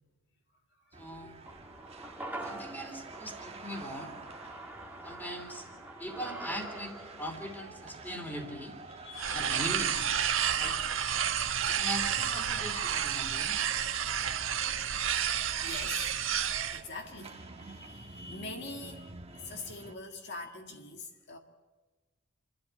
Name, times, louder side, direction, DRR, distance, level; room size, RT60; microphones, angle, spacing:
voice 1, 0.9-1.4 2.4-4.1 5.0-5.7 6.0-8.8 9.3-10.0 10.6-10.8 11.7-13.6, equal, 10° left, 4 dB, 3.1 m, -40 dB
sound 1, 0.9-19.9, right 4 dB, 30° right, 1.4 m, -49 dB
sound 2, 1.5-10.0 10.2-10.3, right 2 dB, 10° right, 1.6 m, -46 dB
voice 2, 8.9-9.7 10.9-12.1 12.5-12.6 14.6-14.8 15.1-16.1 16.7-21.4, left 3 dB, 60° left, 3 dB, 1.9 m, -45 dB
sound 3, 9.2-16.8, right 9 dB, 75° right, 1.4 m, -30 dB
28.5 x 12.5 x 8.2 m, 1.3 s
head